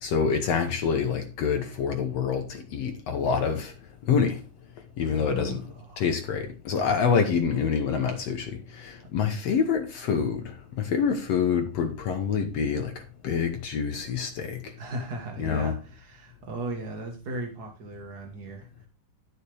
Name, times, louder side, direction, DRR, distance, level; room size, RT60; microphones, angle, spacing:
voice 1, 0.0-3.7 4.1-4.4 5.0-5.6 6.0-12.9 13.2-14.7 15.4-15.7, left 6 dB, 65° left, 1.8 m, -26 dB
voice 2, 5.0-6.0 14.8-18.9, right 2 dB, 45° right, 1.4 m, -37 dB
12.0 x 6.9 x 3.4 m
omnidirectional pair, 3.9 m